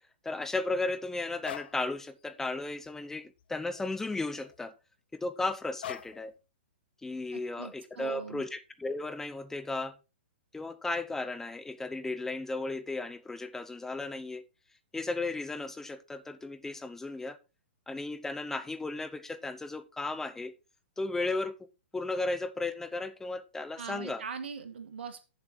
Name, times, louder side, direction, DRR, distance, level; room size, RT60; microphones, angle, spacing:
voice 1, 0.2-4.7 5.1-6.3 7.0-10.0 10.5-14.4 14.9-17.4 17.9-20.5 21.0-21.5 21.9-24.2, left 2 dB, 5° left, 0.8 m, -35 dB
sound 1, 1.4-1.8 2.3-2.5 2.8-3.9 4.2-4.6 5.8-6.3, left 11 dB, 55° left, 0.8 m, -43 dB
voice 2, 7.3-8.4 23.8-25.3, right 6 dB, 65° right, 1.7 m, -41 dB
8.4 x 7.3 x 4.5 m
hypercardioid pair, 120°, 6 cm